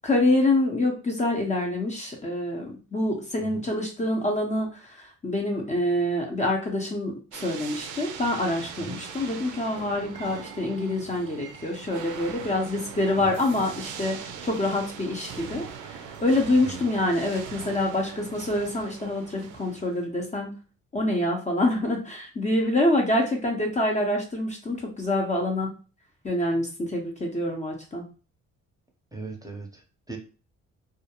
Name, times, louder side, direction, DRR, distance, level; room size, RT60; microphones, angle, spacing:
voice 1, 0.0-20.5 20.9-25.7 26.2-28.0, left 1 dB, 25° left, 1 dB, 0.6 m, -26 dB
sound 1, 7.3-20.0, right 7 dB, 85° right, 0.5 m, -41 dB
voice 2, 29.1-30.2, right 3 dB, 10° right, 1 dB, 0.7 m, -39 dB
2.3 x 2.1 x 2.9 m, 0.35 s
cardioid pair, 90°, 30 cm